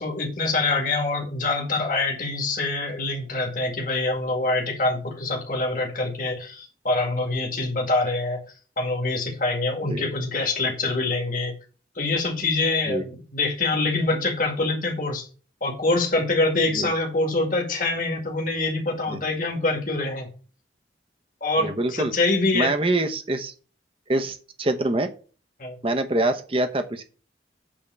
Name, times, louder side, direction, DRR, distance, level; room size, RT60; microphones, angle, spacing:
voice 1, 0.0-8.4 8.8-11.5 12.0-15.2 15.6-20.3 21.4-22.7 25.6-25.8, left 2 dB, 50° left, 1 dB, 2.0 m, -25 dB
voice 2, 21.6-22.1 22.5-23.5 24.1-25.1 25.8-27.0, right 2 dB, 30° right, 7 dB, 0.9 m, -25 dB
8.6 x 3.7 x 6.8 m, 0.38 s
head